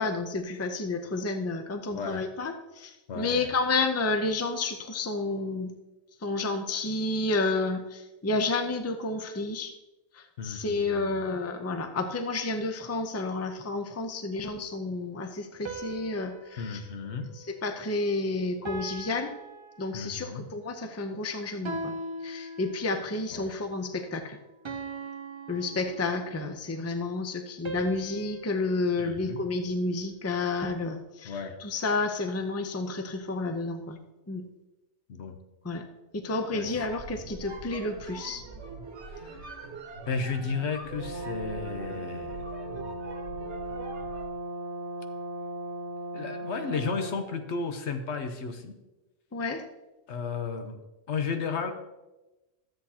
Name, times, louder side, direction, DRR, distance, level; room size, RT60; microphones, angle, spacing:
voice 1, 0.0-5.7 6.2-9.7 10.1-16.8 17.3-19.3 19.8-22.0 22.2-24.4 25.5-34.0 34.3-34.4 35.6-35.8 36.1-38.4 49.3-49.6, left 3 dB, 20° left, 6 dB, 0.5 m, -30 dB
voice 2, 1.9-2.3 3.1-3.5 10.4-11.3 16.6-17.3 19.9-20.4 23.3-23.5 29.0-29.4 31.2-31.6 35.1-35.4 36.5-36.7 39.1-39.5 40.1-42.4 46.1-48.8 50.1-50.8 51.1-51.7, left 5 dB, 80° left, 6 dB, 1.2 m, -33 dB
sound 1, 15.7-18.1 18.7-20.4 21.7-23.2 24.7-26.5 27.7-30.0, right 2 dB, 30° right, 0.7 m, -41 dB
sound 2, 36.6-44.4, right 3 dB, 85° right, 1.3 m, -43 dB
Brass instrument, 41.0-47.2, right 1 dB, 50° right, 1.2 m, -37 dB
13.0 x 7.8 x 2.8 m, 1.0 s
omnidirectional pair, 1.1 m